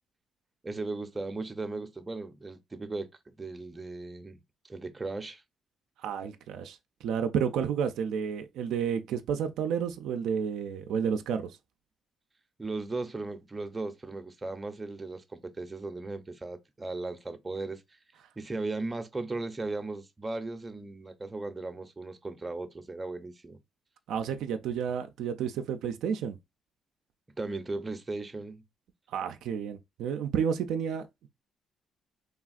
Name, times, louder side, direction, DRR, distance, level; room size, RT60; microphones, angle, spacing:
voice 1, 0.6-4.4 4.6-5.4 12.6-17.8 18.4-23.6 27.4-28.6, right 3 dB, 20° right, 0.5 m, -37 dB
voice 2, 6.0-6.8 7.0-11.5 24.1-26.4 29.1-31.1, right 7 dB, 85° right, 0.3 m, -31 dB
3.3 x 2.4 x 2.4 m
cardioid pair, 90°, 0 cm